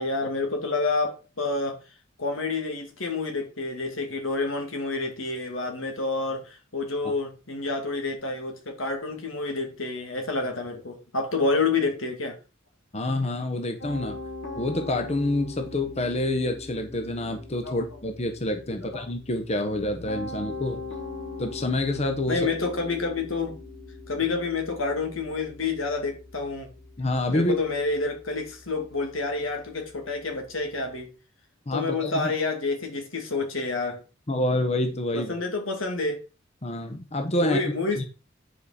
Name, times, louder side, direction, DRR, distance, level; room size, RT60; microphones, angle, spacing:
voice 1, 0.0-1.8 2.2-12.3 17.6-17.8 18.7-19.1 22.3-23.6 24.1-26.7 27.3-31.1 31.7-34.0 35.1-36.2 37.4-38.0, left 3 dB, 90° left, 2.5 m, -28 dB
voice 2, 12.9-14.2 14.6-20.8 21.4-22.4 27.0-27.6 31.7-32.3 34.3-35.4 36.6-37.6 37.9-38.0, left 1 dB, 35° left, 1.0 m, -27 dB
Piano, 13.8-30.9, left 2 dB, 65° left, 2.4 m, -41 dB
9.6 x 5.0 x 4.2 m
head